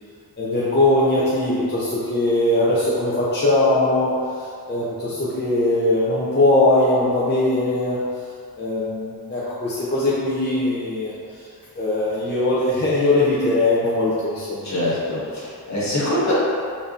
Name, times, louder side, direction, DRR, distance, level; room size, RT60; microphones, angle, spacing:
voice 1, 0.4-4.1 4.4-8.0 8.6-11.1 11.8-14.8, left 2 dB, 25° left, -9 dB, 0.6 m, -20 dB
voice 2, 14.6-16.3, left 1 dB, 45° left, -8 dB, 1.3 m, -24 dB
4.1 x 3.4 x 2.5 m, 2.2 s
wide cardioid pair, 100°, 39 cm